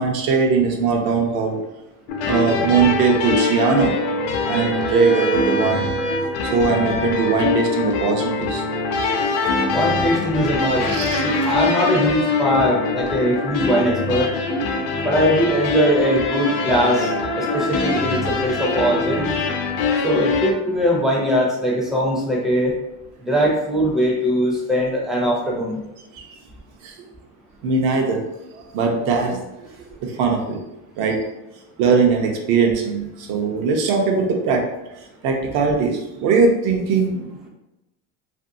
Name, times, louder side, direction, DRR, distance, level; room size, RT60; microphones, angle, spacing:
voice 1, 0.0-1.6 2.2-4.0 4.5-5.9 6.4-8.6 10.9-11.2 14.5-14.6 17.4-17.5 26.2-26.3 26.8-26.9 27.6-28.2 28.5-29.7 30.0-30.6 31.0-31.2 31.8-34.6 35.2-37.5, right 5 dB, 65° right, 2 dB, 0.7 m, -20 dB
sound 1, 2.1-20.5, left 3 dB, 70° left, 0.6 m, -23 dB
voice 2, 9.7-10.9 11.2-14.3 15.0-19.3 20.0-22.7 23.2-25.8, equal, ahead, -3 dB, 0.4 m, -21 dB
2.9 x 2.6 x 2.5 m, 0.94 s
cardioid pair, 145°, 40 cm